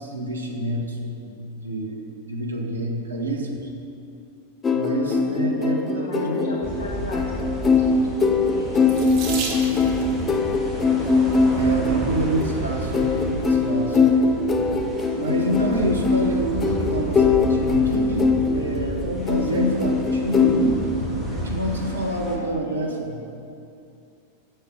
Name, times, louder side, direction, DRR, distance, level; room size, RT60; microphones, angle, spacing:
voice 1, 0.0-3.7 4.7-6.5 11.5-14.0 15.1-20.8 21.3-23.2, right 1 dB, 75° right, 1 dB, 1.1 m, -27 dB
sound 1, 4.6-20.6, left 4 dB, 20° left, 0.6 m, -22 dB
voice 2, 5.1-7.3 7.7-8.9 21.6-23.0, left 2 dB, 70° left, -2 dB, 1.0 m, -37 dB
sound 2, 6.6-22.4, right 1 dB, 5° left, 1.8 m, -32 dB
Water tap faucet / Sink (filling or washing), 8.9-10.1 11.1-11.5 12.2-12.3 12.7-12.8, right 4 dB, 45° right, 1.4 m, -33 dB
7.8 x 6.7 x 6.2 m, 2.5 s
figure-of-eight pair, 90°, 0 cm